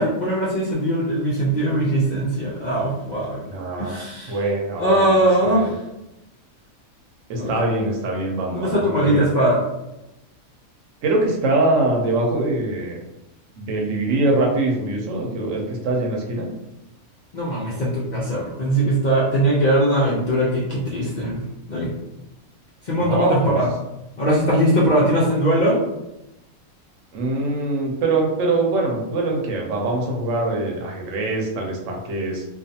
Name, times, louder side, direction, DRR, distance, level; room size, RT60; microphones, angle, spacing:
voice 1, 0.0-3.4 3.8-4.4 4.8-5.7 7.4-7.5 8.5-9.6 17.3-21.4 21.7-21.9 22.8-23.7 24.2-25.8, right 1 dB, 75° left, -6 dB, 0.4 m, -20 dB
voice 2, 3.4-5.2 5.4-5.7 7.3-9.3 11.0-13.0 13.6-16.5 22.9-23.6 27.1-32.4, right 2 dB, 65° right, -1 dB, 0.9 m, -23 dB
2.4 x 2.3 x 2.7 m, 0.91 s
omnidirectional pair, 1.5 m